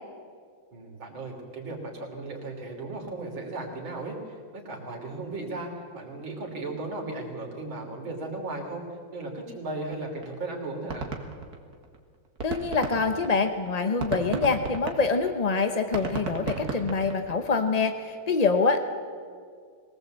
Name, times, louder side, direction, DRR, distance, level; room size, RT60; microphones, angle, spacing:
voice 1, 0.7-8.8 9.1-11.1, right 2 dB, 80° right, 2 dB, 4.0 m, -36 dB
sound 1, 9.9-10.0 10.2-10.3 10.6-12.0 12.2-17.5, right 4 dB, 50° right, 2.2 m, -34 dB
voice 2, 12.4-18.8, left 4 dB, 50° left, 8 dB, 0.4 m, -25 dB
22.5 x 18.5 x 8.0 m, 2.1 s
omnidirectional pair, 2.1 m